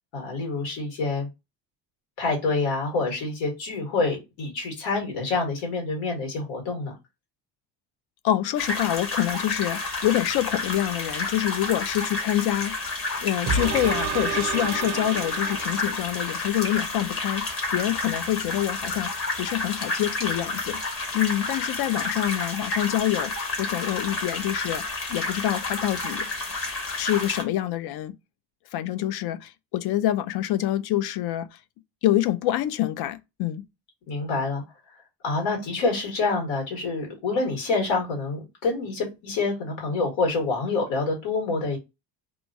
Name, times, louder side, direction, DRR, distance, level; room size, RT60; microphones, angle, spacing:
voice 1, 0.1-1.3 2.2-6.9 34.1-34.6 35.2-41.8, left 3 dB, 85° left, 1.7 m, -27 dB
voice 2, 8.2-12.7 13.2-17.4 17.7-20.8 21.1-26.3 27.0-28.1 28.7-31.5 32.0-33.6, left 13 dB, 55° left, 0.5 m, -26 dB
sound 1, 8.6-27.4, left 3 dB, 30° left, 1.0 m, -30 dB
sound 2, 13.5-16.4 16.9-17.0, right 5 dB, 40° right, 0.5 m, -30 dB
3.0 x 2.3 x 2.5 m
cardioid pair, 140°, 46 cm